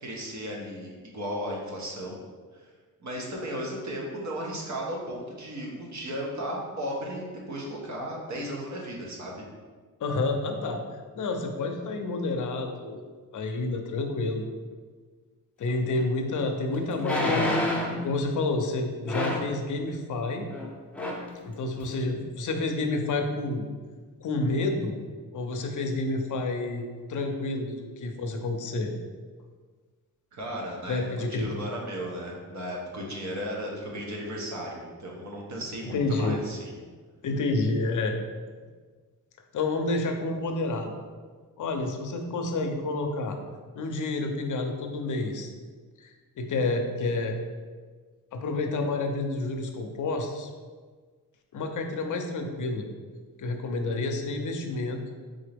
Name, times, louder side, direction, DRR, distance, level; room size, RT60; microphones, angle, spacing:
voice 1, 0.0-2.2 2.5-2.7 3.0-9.4 30.3-31.0 31.3-36.7, equal, 55° right, -2 dB, 1.1 m, -35 dB
voice 2, 10.0-10.8 11.2-13.0 13.3-14.4 15.6-17.5 17.9-20.5 21.4-23.6 24.2-25.0 25.3-28.9 30.9-31.5 35.9-36.4 37.2-38.2 39.5-40.9 41.6-43.4 43.7-45.5 46.0-47.4 48.3-50.5 51.5-52.9 53.4-55.0, left 2 dB, 60° left, 4 dB, 0.6 m, -29 dB
sound 1, 16.0-16.1 17.0-18.0 19.1-19.5 20.5-20.7 20.9-21.3 21.8-21.9, left 1 dB, 5° left, 0.7 m, -27 dB
3.9 x 3.7 x 3.4 m, 1.5 s
cardioid pair, 90°, 35 cm